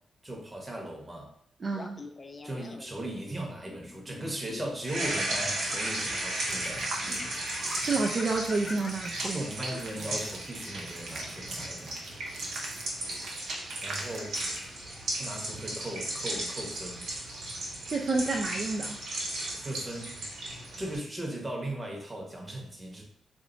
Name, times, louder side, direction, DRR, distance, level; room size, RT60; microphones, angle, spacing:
voice 1, 0.2-1.3 2.4-6.9 9.3-12.3 13.8-14.4 15.2-17.1 19.5-20.3 20.7-23.0, right 1 dB, 20° right, 0 dB, 1.1 m, -38 dB
voice 2, 1.6-2.0 7.8-9.4 17.9-19.0, right 3 dB, 40° right, 0 dB, 0.4 m, -29 dB
Laughter, 1.7-3.0 3.7-4.7 5.2-10.2, left 3 dB, 35° left, 0.3 m, -44 dB
sound 1, 4.8-21.0, right 1 dB, 90° right, 1.6 m, -35 dB
sound 2, 6.5-14.8, right 2 dB, 75° right, 0.8 m, -42 dB
3.5 x 2.4 x 3.9 m, 0.65 s
cardioid pair, 90°, 0 cm